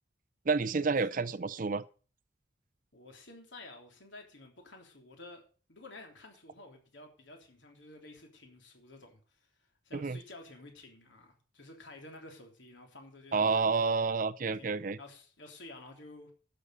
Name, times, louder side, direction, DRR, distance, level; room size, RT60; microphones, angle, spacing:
voice 1, 0.5-1.9 9.9-10.2 13.3-15.0, right 4 dB, 45° right, 0.5 m, -29 dB
voice 2, 2.9-5.4 5.7-9.5 9.8-13.9 14.5-16.3, left 2 dB, 70° left, 3.4 m, -52 dB
11.5 x 7.0 x 6.6 m
head